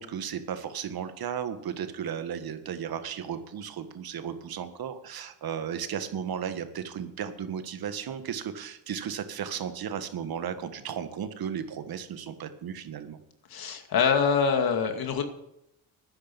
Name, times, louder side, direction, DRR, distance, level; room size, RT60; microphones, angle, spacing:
voice 1, 0.0-13.2, right 8 dB, 60° right, 9 dB, 1.7 m, -35 dB
voice 2, 13.5-15.2, left 6 dB, 60° left, 6 dB, 2.4 m, -24 dB
12.0 x 10.0 x 7.1 m, 0.83 s
supercardioid pair, 75°, 40 cm